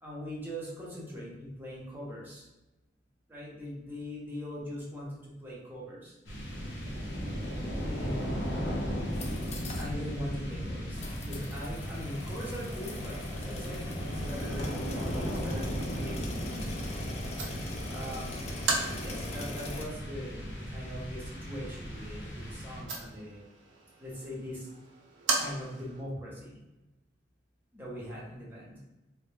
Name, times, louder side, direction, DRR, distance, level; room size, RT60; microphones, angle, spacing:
voice 1, 0.0-2.5 3.3-6.1 7.8-8.4 9.8-16.7 17.9-23.5 24.0-24.7 25.3-26.6 27.7-28.8, equal, 10° right, -6 dB, 0.6 m, -41 dB
sound 1, 6.3-23.2, equal, 80° left, 0.7 m, -36 dB
sound 2, 9.1-9.9 10.3-10.4 11.0-19.8, left 2 dB, 35° left, 0.3 m, -42 dB
sound 3, 13.0-26.0, right 3 dB, 75° right, 0.5 m, -40 dB
2.1 x 2.0 x 3.1 m, 1.0 s
head